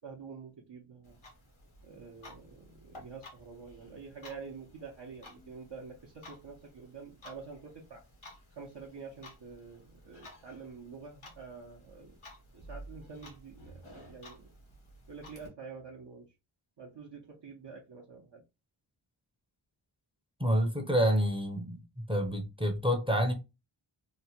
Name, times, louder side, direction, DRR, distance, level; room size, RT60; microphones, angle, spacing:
voice 1, 0.0-1.2 1.8-8.0 8.5-12.2 12.5-14.5 15.1-16.3 16.8-18.4, right 5 dB, 60° right, 0.8 m, -47 dB
Clock, 1.0-15.5, equal, 85° left, 1.2 m, -53 dB
voice 2, 20.4-23.3, equal, 10° right, 0.6 m, -28 dB
2.9 x 2.1 x 2.8 m
wide cardioid pair, 50°, 48 cm